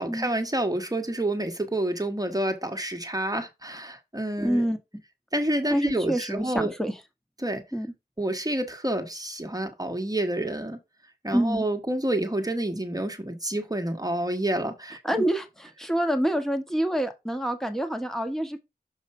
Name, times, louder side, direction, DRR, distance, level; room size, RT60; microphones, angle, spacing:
voice 1, 0.0-4.6 5.3-6.7 7.4-7.6 8.2-10.8 11.2-15.0, right 1 dB, 20° right, 1.3 m, -28 dB
voice 2, 4.4-4.8 5.7-7.0 7.7-7.9 11.3-11.6 15.0-18.6, right 1 dB, ahead, 1.3 m, -27 dB
6.6 x 3.1 x 5.4 m
wide cardioid pair, 40°, 17 cm